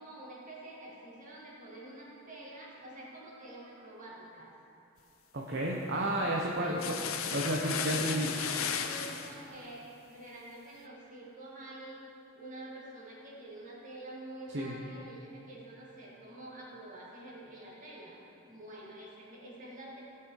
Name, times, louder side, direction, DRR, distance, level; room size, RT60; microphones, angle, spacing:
voice 1, 0.0-4.5 6.6-6.9 7.6-12.0 12.4-18.2 18.4-20.0, right 1 dB, 40° right, -5 dB, 2.4 m, -47 dB
voice 2, 5.3-7.0 7.3-8.3 14.5-14.7, right 1 dB, 55° right, -2 dB, 0.9 m, -31 dB
sound 1, 6.8-9.3, left 7 dB, 85° left, 0.7 m, -34 dB
17.5 x 6.0 x 4.8 m, 2.8 s
head